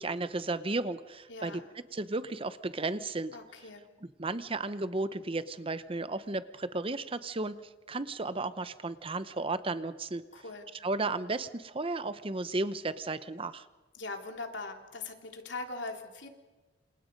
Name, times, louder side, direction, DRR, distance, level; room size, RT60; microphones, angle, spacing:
voice 1, 0.0-1.6 1.9-3.3 4.2-10.2 10.8-13.7, right 2 dB, 30° right, 13 dB, 0.8 m, -34 dB
voice 2, 1.3-1.7 3.3-3.9 10.3-10.7 13.9-16.3, left 3 dB, 65° left, 4 dB, 3.2 m, -41 dB
28.5 x 28.0 x 5.3 m, 1.3 s
head